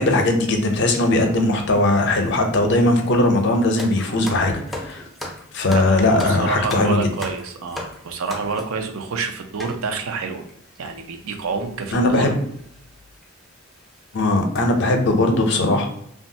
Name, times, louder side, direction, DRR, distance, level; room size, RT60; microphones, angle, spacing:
voice 1, 0.0-5.0 5.5-7.1 11.9-12.4 14.1-15.9, left 2 dB, 55° left, 4 dB, 0.5 m, -19 dB
sound 1, 3.8-8.8 9.6-9.8 10.5-10.6 10.7-10.9 11.9-12.1 12.6-12.7 13.2-13.3 13.8-14.0 14.4-14.6, left 1 dB, ahead, 0.3 m, -35 dB
voice 2, 5.7-10.4 10.8-12.3, right 4 dB, 85° right, 6 dB, 0.4 m, -28 dB
3.0 x 2.3 x 2.6 m, 0.72 s
head